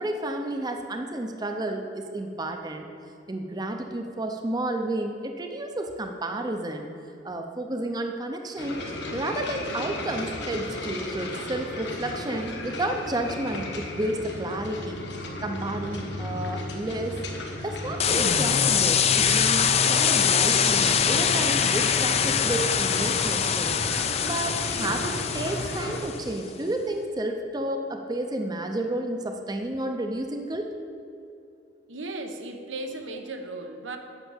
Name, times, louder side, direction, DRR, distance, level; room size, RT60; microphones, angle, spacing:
voice 1, 0.0-2.8 3.3-6.9 7.2-8.8 9.1-15.0 15.4-17.2 17.6-23.8 24.2-30.7, right 1 dB, 20° right, 4 dB, 0.6 m, -31 dB
sound 1, 8.6-26.0, left 1 dB, 65° left, 1.4 m, -35 dB
sound 2, 18.0-26.2, left 7 dB, 35° left, 0.4 m, -23 dB
voice 2, 31.9-34.0, right 2 dB, 85° right, 5 dB, 1.0 m, -36 dB
9.1 x 6.2 x 7.1 m, 2.7 s
head